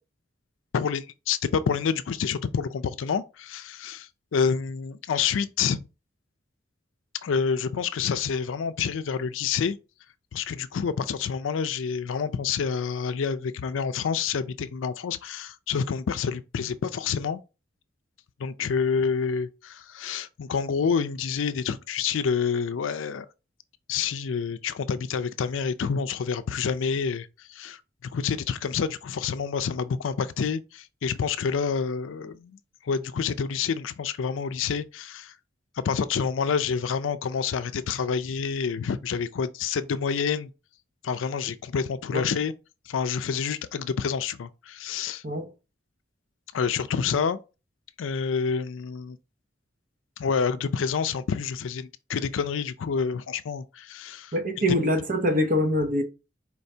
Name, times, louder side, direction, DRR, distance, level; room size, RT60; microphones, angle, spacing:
voice 1, 0.7-5.8 7.2-9.8 10.3-17.4 18.4-23.3 23.9-27.8 28.1-32.6 32.8-35.3 35.8-40.5 41.0-42.5 42.9-45.2 46.5-47.4 48.0-49.2 50.2-54.3, left 6 dB, 90° left, 0.4 m, -28 dB
voice 2, 54.3-56.0, left 1 dB, 45° right, 0.7 m, -24 dB
4.5 x 2.7 x 3.2 m
head